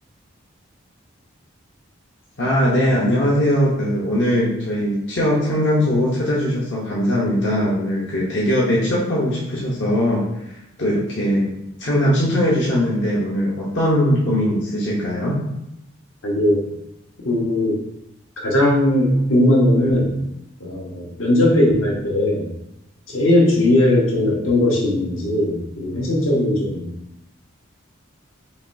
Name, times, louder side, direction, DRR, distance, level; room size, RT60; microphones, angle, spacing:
voice 1, 2.4-11.5 11.8-15.4, equal, 60° left, -5 dB, 0.8 m, -20 dB
voice 2, 16.2-16.6 17.2-17.8 18.4-20.2 20.6-22.5 23.1-26.9, left 1 dB, 75° left, -2 dB, 1.1 m, -18 dB
5.0 x 3.1 x 2.6 m, 0.85 s
head